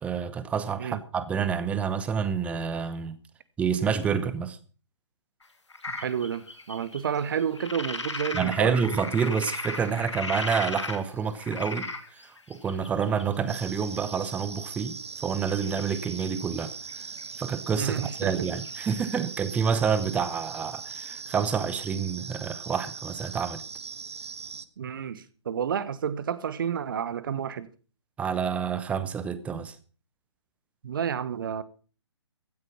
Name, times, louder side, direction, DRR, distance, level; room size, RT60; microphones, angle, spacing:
voice 1, 0.0-3.2 3.6-4.6 8.3-11.9 12.5-15.0 15.2-16.7 17.4-23.6 28.2-29.8, right 6 dB, 10° right, 0.9 m, -28 dB
sound 1, 5.7-11.0 11.3-13.9 15.4-16.3 16.6-16.9 17.2-19.4 19.7-19.8 20.0-20.1 20.3-20.4 20.6-20.7 21.0-21.1, left 3 dB, 75° left, 2.7 m, -37 dB
voice 2, 5.9-8.8 17.7-18.5 24.8-27.7 30.8-31.6, right 8 dB, 45° right, 1.3 m, -30 dB
sound 2, 13.5-24.7, right 5 dB, 70° right, 1.1 m, -40 dB
15.5 x 9.3 x 5.9 m
figure-of-eight pair, 135°, 15 cm